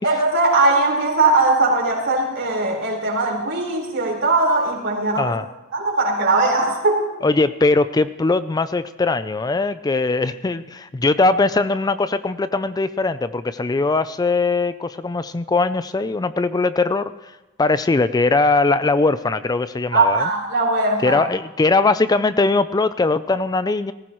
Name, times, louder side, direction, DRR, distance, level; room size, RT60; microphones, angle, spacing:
voice 1, 0.0-5.4 5.7-7.0 19.9-21.3, right 2 dB, 60° right, -1 dB, 4.3 m, -19 dB
voice 2, 7.2-17.1 17.6-20.3 21.0-23.9, left 3 dB, 20° left, 13 dB, 0.4 m, -20 dB
18.5 x 15.5 x 3.0 m, 1.1 s
head